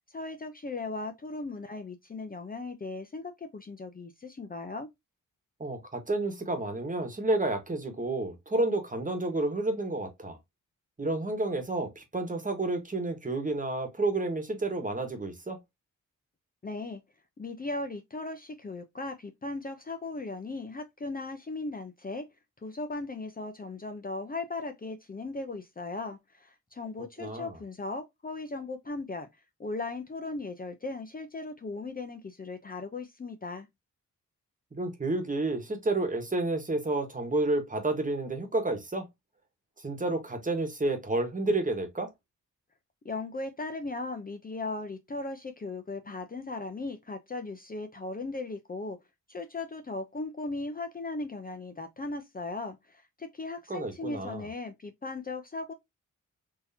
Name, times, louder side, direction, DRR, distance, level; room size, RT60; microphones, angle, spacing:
voice 1, 0.1-4.9 16.6-17.0 17.4-22.3 22.6-29.3 29.6-33.7 43.0-49.0 49.3-55.7, left 3 dB, 30° left, 0.6 m, -37 dB
voice 2, 5.6-10.4 11.0-15.6 27.2-27.6 34.7-39.1 39.8-42.1 53.7-54.5, right 2 dB, 25° right, 1.3 m, -30 dB
3.7 x 2.9 x 2.7 m
cardioid pair, 55°, 32 cm